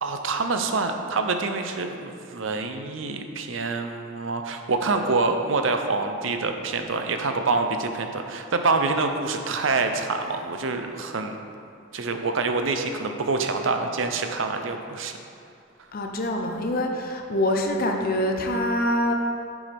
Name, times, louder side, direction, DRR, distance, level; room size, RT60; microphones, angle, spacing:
voice 1, 0.0-11.4 11.9-15.1, right 3 dB, 65° right, 6 dB, 0.7 m, -26 dB
voice 2, 15.9-19.1, left 1 dB, 45° left, 3 dB, 0.7 m, -25 dB
9.3 x 7.1 x 3.5 m, 2.4 s
head